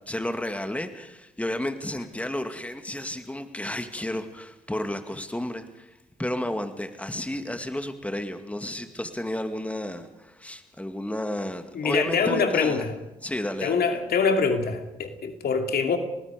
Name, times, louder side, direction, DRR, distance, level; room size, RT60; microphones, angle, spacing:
voice 1, 0.1-5.9 6.2-12.9 13.2-13.8, left 1 dB, 5° left, 7 dB, 2.3 m, -32 dB
voice 2, 11.7-12.9 13.6-16.0, left 5 dB, 55° left, 5 dB, 2.6 m, -24 dB
29.5 x 19.0 x 5.2 m, 0.92 s
hypercardioid pair, 40°, 19 cm